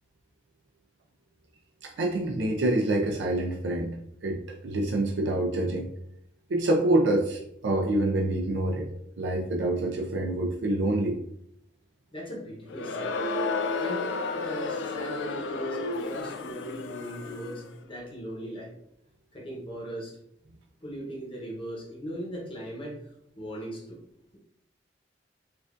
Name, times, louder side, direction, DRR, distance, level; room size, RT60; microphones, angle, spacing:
voice 1, 1.8-5.9 6.5-8.9 9.2-11.2, right 1 dB, 75° right, 0 dB, 0.5 m, -26 dB
voice 2, 12.1-13.3 13.8-18.7 19.3-20.2 20.8-23.0 23.4-24.0, equal, 30° left, -4 dB, 0.9 m, -38 dB
Crowd, 12.7-17.7, left 3 dB, 85° left, 0.4 m, -32 dB
4.7 x 2.5 x 2.5 m, 0.74 s
head